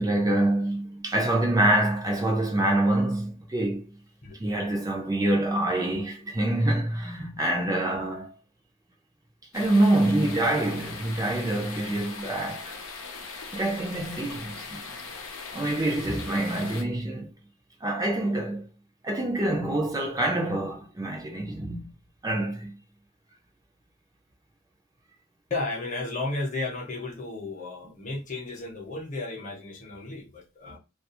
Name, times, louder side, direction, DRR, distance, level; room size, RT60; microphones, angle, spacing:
voice 1, 0.0-3.8 4.4-8.3 9.5-12.7 13.5-14.8 15.5-17.3 17.8-18.6 19.0-21.9 22.2-22.7, right 1 dB, 20° right, 0.4 m, -26 dB
sound 1, 9.5-16.8, left 4 dB, 90° left, 0.6 m, -40 dB
voice 2, 25.5-30.8, left 2 dB, 40° left, 0.8 m, -33 dB
2.4 x 2.3 x 2.8 m
head